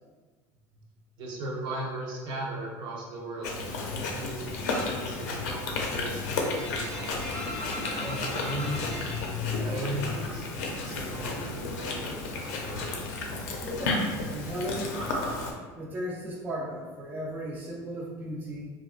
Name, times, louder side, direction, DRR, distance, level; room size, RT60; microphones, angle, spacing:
voice 1, 1.2-3.6 3.9-7.2 7.9-9.0 9.6-12.9, right 1 dB, 55° right, -2 dB, 0.7 m, -37 dB
Chewing mastication, 3.4-15.5, left 3 dB, 90° left, 0.5 m, -32 dB
sound 1, 4.6-5.1 5.4-10.3 10.6-11.6 11.9-14.7, left 1 dB, 10° left, 0.7 m, -40 dB
voice 2, 14.3-15.0 15.8-18.7, equal, 20° right, -3 dB, 0.5 m, -35 dB
3.2 x 2.5 x 2.4 m, 1.4 s
supercardioid pair, 115°, 9 cm